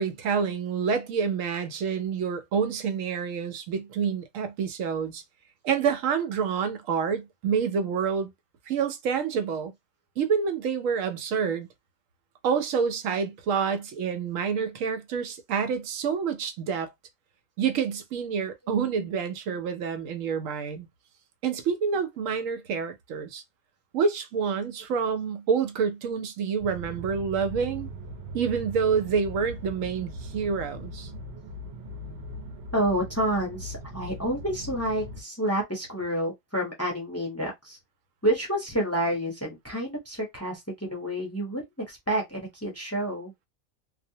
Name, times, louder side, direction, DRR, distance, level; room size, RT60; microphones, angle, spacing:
voice 1, 0.0-5.2 5.6-8.3 8.7-9.7 10.2-11.7 12.4-16.9 17.6-20.9 21.4-23.4 23.9-27.9 28.3-31.1, right 6 dB, 85° right, 1.0 m, -28 dB
sound 1, 26.6-35.2, right 1 dB, 60° right, 0.9 m, -40 dB
voice 2, 32.7-37.8 38.2-43.3, right 1 dB, 15° left, 0.5 m, -29 dB
2.4 x 2.0 x 2.7 m
omnidirectional pair, 1.3 m